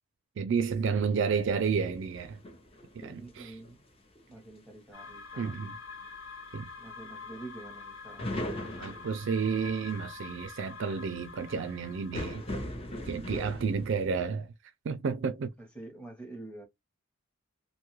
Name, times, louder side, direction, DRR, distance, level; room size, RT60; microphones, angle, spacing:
voice 1, 0.4-2.4 2.9-3.5 5.4-5.8 6.5-6.7 8.8-12.4 13.1-14.5 14.8-15.5, right 5 dB, 55° right, 0.4 m, -31 dB
sound 1, 1.2-3.7 4.2-4.6 6.0-6.1 8.2-9.9 12.1-14.1, left 1 dB, 25° left, 0.6 m, -39 dB
voice 2, 3.1-3.8 4.3-5.8 6.8-8.3 15.6-16.7, right 2 dB, 5° left, 0.9 m, -47 dB
sound 2, 4.9-12.6, left 4 dB, 60° left, 1.0 m, -46 dB
2.6 x 2.3 x 3.0 m
head